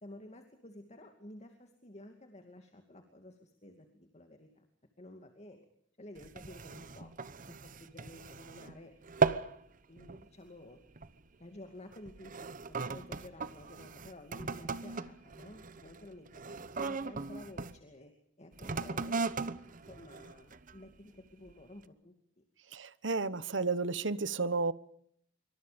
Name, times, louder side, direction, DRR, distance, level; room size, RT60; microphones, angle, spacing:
voice 1, 0.0-4.7 5.0-5.7 6.0-7.1 7.5-8.9 9.9-10.8 11.4-16.4 16.8-18.1 18.4-19.2 19.8-22.4, left 1 dB, 35° left, 5 dB, 2.5 m, -52 dB
sound 1, 6.2-8.8 9.0-9.6 10.0-10.3 11.0-11.2 11.9-17.7 18.5-20.9 21.5-21.6, right 4 dB, 45° right, 1.1 m, -37 dB
voice 2, 22.7-24.7, right 4 dB, 70° right, 16 dB, 1.1 m, -32 dB
26.5 x 24.5 x 5.2 m, 0.67 s
head